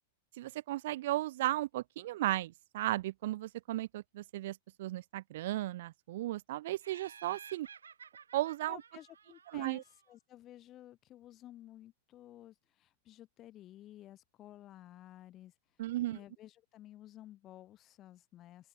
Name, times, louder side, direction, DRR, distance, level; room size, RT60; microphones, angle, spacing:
voice 1, 0.4-7.7 8.3-8.8 9.5-9.8 15.8-16.2, right 15 dB, 60° right, 0.3 m, -35 dB
Laughter, 6.8-10.1, right 6 dB, 80° right, 0.8 m, -54 dB
voice 2, 8.7-15.5 16.1-18.7, left 13 dB, 35° left, 2.9 m, -53 dB
open air
figure-of-eight pair, 100°, 0 cm